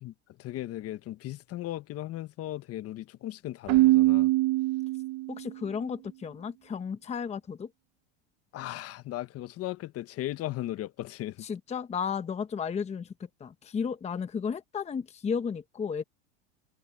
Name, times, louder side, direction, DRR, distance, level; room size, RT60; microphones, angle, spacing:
voice 1, 0.4-4.3 8.5-11.5, left 14 dB, 45° left, 1.3 m, -37 dB
Keyboard (musical), 3.7-5.5, right 20 dB, 50° right, 0.8 m, -23 dB
voice 2, 5.3-7.7 11.4-16.0, left 6 dB, 20° left, 1.0 m, -33 dB
supercardioid pair, 120°, 35 cm